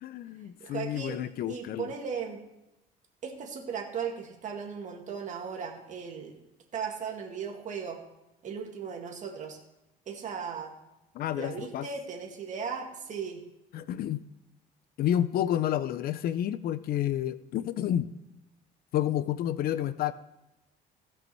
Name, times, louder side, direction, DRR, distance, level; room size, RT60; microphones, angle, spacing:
voice 1, 0.0-1.9 11.1-11.9 13.7-14.2 15.0-18.1 18.9-20.1, left 11 dB, 65° left, 15 dB, 0.5 m, -30 dB
voice 2, 0.6-1.2 1.5-2.4 3.2-6.4 6.7-8.0 8.4-9.6 10.1-10.7 11.3-13.4, right 6 dB, 45° right, 1 dB, 2.1 m, -37 dB
16.5 x 5.5 x 4.5 m, 0.92 s
cardioid pair, 110°, 17 cm